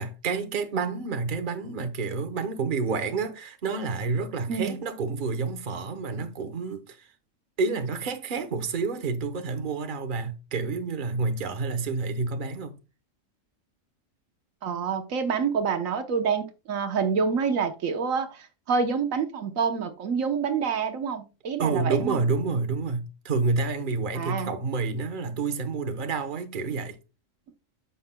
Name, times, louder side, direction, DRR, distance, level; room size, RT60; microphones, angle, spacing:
voice 1, 0.0-7.1 7.6-12.8 21.6-27.0, right 4 dB, 40° right, 1.1 m, -29 dB
voice 2, 14.6-22.2 24.1-24.5, right 6 dB, 80° right, 1.4 m, -27 dB
9.7 x 7.1 x 2.2 m
omnidirectional pair, 1.4 m